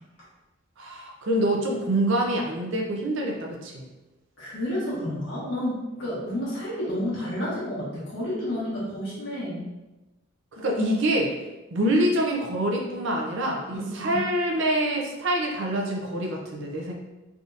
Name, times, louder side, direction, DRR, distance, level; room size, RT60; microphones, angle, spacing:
voice 1, 0.8-3.9 10.6-11.3 11.7-16.9, right 1 dB, 60° right, 0 dB, 0.5 m, -26 dB
voice 2, 4.4-9.6 13.7-14.1, left 1 dB, 60° left, -7 dB, 1.3 m, -30 dB
3.5 x 2.7 x 2.5 m, 1.0 s
head